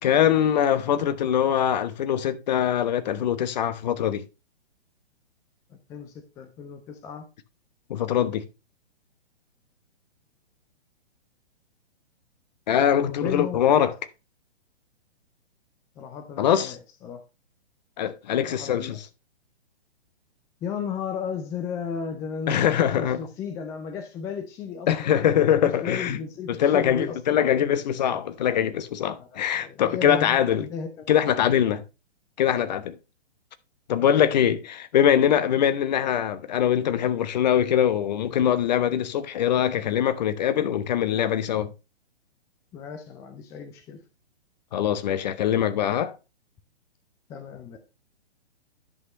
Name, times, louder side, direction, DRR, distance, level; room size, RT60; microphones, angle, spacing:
voice 1, 0.0-4.2 7.9-8.4 12.7-13.9 16.4-16.8 18.0-19.1 22.5-23.3 24.9-26.2 26.5-30.7 31.1-31.8 32.4-33.0 33.9-41.7 44.7-46.2, left 9 dB, 40° left, 1.0 m, -23 dB
voice 2, 5.7-7.3 13.0-13.6 16.0-16.8 17.0-17.2 18.5-19.0 20.6-25.1 25.6-27.2 29.2-29.3 29.6-31.4 42.7-44.0 47.3-47.8, left 6 dB, 10° left, 0.5 m, -35 dB
10.5 x 6.2 x 3.0 m
figure-of-eight pair, 125°, 32 cm